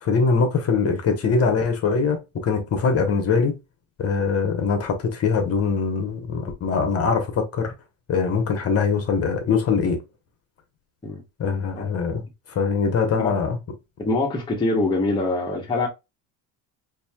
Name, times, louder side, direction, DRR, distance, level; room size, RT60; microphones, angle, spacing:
voice 1, 0.0-3.6 4.0-7.7 8.1-10.0 11.4-12.2 12.5-13.6, left 5 dB, 35° left, 1.1 m, -22 dB
voice 2, 14.0-15.9, left 2 dB, 10° left, 1.0 m, -24 dB
5.3 x 2.7 x 2.3 m
cardioid pair, 135°, 41 cm